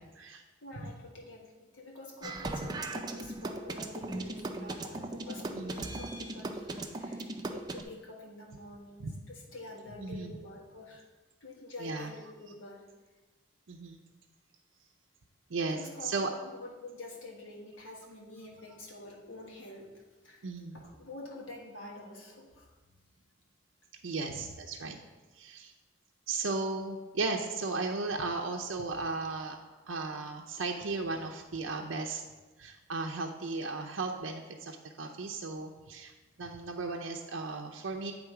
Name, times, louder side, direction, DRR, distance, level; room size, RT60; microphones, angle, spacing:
voice 1, 0.6-11.0 11.4-12.8 15.6-19.9 20.2-20.4 20.7-22.7 24.3-24.5 36.2-36.3, left 2 dB, 80° left, -1 dB, 1.5 m, -47 dB
sound 1, 2.2-7.8, right 2 dB, 20° right, 0.5 m, -37 dB
voice 2, 5.5-6.0 9.0-9.1 10.0-10.4 11.8-12.1 13.7-14.0 15.5-16.3 20.4-20.8 24.0-25.0 25.4-25.7 26.3-29.6 29.9-32.2 32.6-36.1 36.4-38.1, right 3 dB, 90° right, 2 dB, 0.6 m, -35 dB
9.0 x 3.7 x 4.8 m, 1.2 s
head